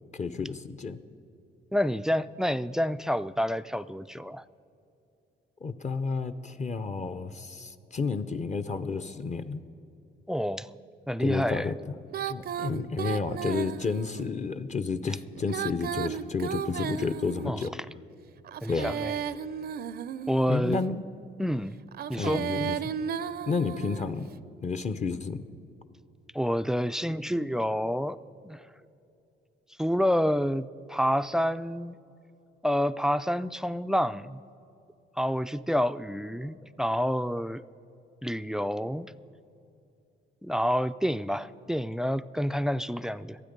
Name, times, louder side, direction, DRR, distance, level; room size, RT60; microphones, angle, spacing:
voice 1, 0.1-1.0 5.6-9.6 11.2-11.7 12.3-17.7 18.7-18.9 20.5-21.0 21.4-21.5 22.2-22.8 23.5-24.3 24.6-25.5, left 4 dB, 35° left, 11 dB, 0.7 m, -31 dB
voice 2, 1.7-4.4 10.3-10.7 11.1-11.7 17.5-17.6 18.6-19.1 20.3-20.8 21.4-21.8 22.1-22.4 26.3-28.2 28.4-28.6 29.8-32.0 32.6-34.4 35.2-37.6 38.2-39.1 40.4-43.4, equal, 5° right, 15 dB, 0.3 m, -28 dB
Female singing, 12.1-14.3 15.4-17.7 18.5-20.6 21.9-24.1, right 8 dB, 50° right, 0.5 m, -34 dB
25.5 x 9.3 x 5.3 m, 2.7 s
cardioid pair, 90°, 20 cm